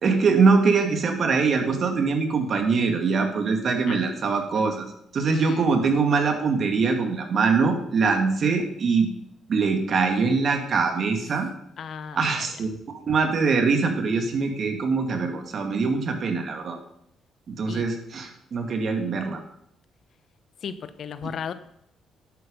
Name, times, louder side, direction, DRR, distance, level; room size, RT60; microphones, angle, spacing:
voice 1, 0.0-4.9 5.1-9.1 9.5-11.5 12.2-16.8 17.5-19.4, right 4 dB, 55° right, 5 dB, 2.3 m, -23 dB
voice 2, 5.2-5.8 11.8-12.5 17.7-17.9 20.6-21.5, left 7 dB, 60° left, 12 dB, 0.9 m, -35 dB
11.0 x 8.7 x 5.4 m, 0.73 s
cardioid pair, 90°, 0 cm